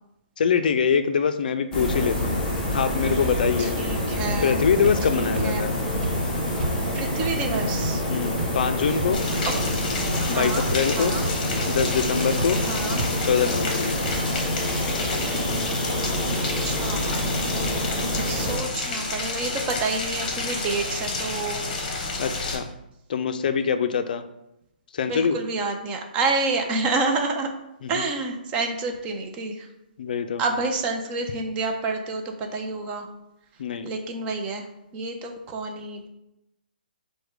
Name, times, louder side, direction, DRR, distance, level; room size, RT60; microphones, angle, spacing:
voice 1, 0.4-2.4 2.7-3.7 4.4-5.8 8.1-9.2 10.3-11.2 11.7-12.6 13.2-14.0 22.2-22.7 23.1-24.2 24.9-25.4 27.8-28.0 30.0-30.4 33.6-33.9, left 6 dB, 60° left, 9 dB, 0.4 m, -24 dB
sound 1, 1.7-18.6, left 1 dB, 10° left, 1.0 m, -27 dB
voice 2, 3.6-4.6 5.1-5.6 6.9-8.0 9.4-9.5 10.2-10.7 11.0-11.3 12.7-13.1 16.6-17.2 18.3-21.7 25.1-27.5 27.9-29.7 30.4-33.1 33.8-34.6 34.9-36.1, right 3 dB, 20° right, 3 dB, 0.5 m, -28 dB
sound 2, 4.8-5.0 5.3-5.5 6.0-6.1 6.6-6.7 7.2-7.3 7.8-7.9 8.4-8.5 9.0-9.1 9.6-9.7 10.1-10.2 10.6-10.9 11.2-11.3 11.8-11.9 12.4-12.5 13.0-13.1 13.5-13.6 14.0-14.1, right 2 dB, 70° right, 0.9 m, -29 dB
Rain, 9.1-22.6, left 3 dB, 45° left, 1.0 m, -30 dB
4.8 x 2.1 x 4.7 m, 0.87 s
hypercardioid pair, 155°, 5 cm